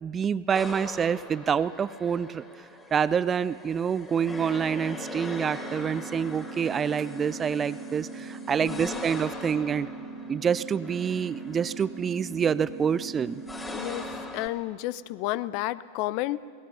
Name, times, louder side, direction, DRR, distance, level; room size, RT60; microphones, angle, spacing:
voice 1, 0.0-2.4 2.9-9.9 10.3-13.4, right 7 dB, 20° right, 18 dB, 0.5 m, -27 dB
sound 1, 0.5-14.5, left 2 dB, 10° left, 2.9 m, -43 dB
sound 2, 4.2-14.2, right 3 dB, 90° right, 3.3 m, -41 dB
voice 2, 8.6-9.0 13.7-14.1 14.3-16.5, left 16 dB, 45° left, 18 dB, 0.5 m, -31 dB
28.5 x 18.5 x 5.6 m, 2.2 s
figure-of-eight pair, 90°, 0 cm